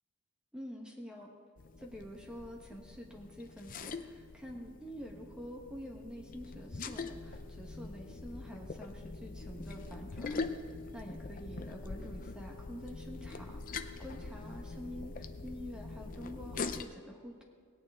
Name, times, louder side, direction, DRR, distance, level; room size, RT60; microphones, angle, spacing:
voice 1, 0.5-1.3 1.8-10.5 10.9-17.4, equal, 5° right, -1 dB, 1.2 m, -47 dB
sound 1, 1.6-16.8, left 3 dB, 40° left, 0.5 m, -43 dB
18.0 x 9.1 x 3.6 m, 2.1 s
head